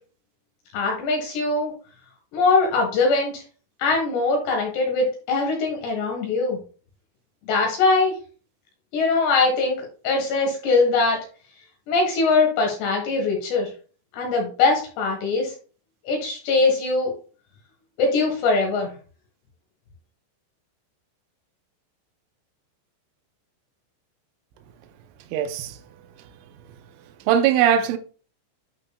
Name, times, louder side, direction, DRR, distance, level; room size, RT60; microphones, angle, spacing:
voice 1, 0.7-1.7 2.3-3.4 3.8-6.6 7.5-8.2 8.9-11.2 11.9-13.7 14.1-15.5 16.0-17.1 18.0-18.9, left 3 dB, 70° left, 3.2 m, -22 dB
voice 2, 25.3-25.8 27.3-28.0, right 9 dB, 80° right, 3.0 m, -20 dB
11.0 x 4.7 x 2.2 m
omnidirectional pair, 5.8 m